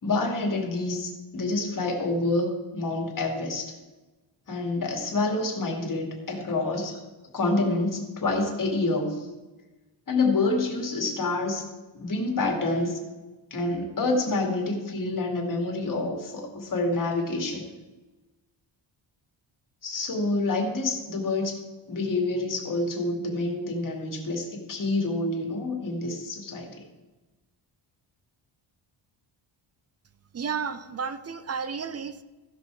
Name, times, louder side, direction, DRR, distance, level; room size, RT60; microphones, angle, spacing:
voice 1, 0.0-3.7 4.5-7.0 7.3-9.3 10.1-11.6 11.9-13.0 13.5-17.6 19.8-21.6 21.9-26.8, left 2 dB, 40° left, 1 dB, 2.3 m, -27 dB
voice 2, 30.3-32.2, right 6 dB, 30° right, 12 dB, 0.6 m, -32 dB
15.0 x 5.5 x 4.6 m, 1.2 s
wide cardioid pair, 125°, 48 cm